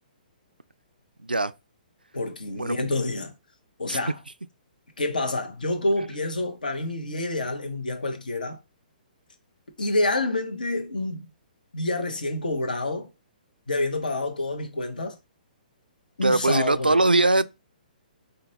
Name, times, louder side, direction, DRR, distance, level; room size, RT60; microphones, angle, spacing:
voice 1, 2.1-3.3 3.8-4.2 5.0-8.6 9.8-11.3 11.7-13.1 13.7-15.2 16.2-17.0, left 2 dB, 65° left, 1.0 m, -28 dB
voice 2, 16.2-17.5, right 2 dB, 85° right, 0.4 m, -21 dB
5.1 x 2.2 x 4.0 m
figure-of-eight pair, 125°, 5 cm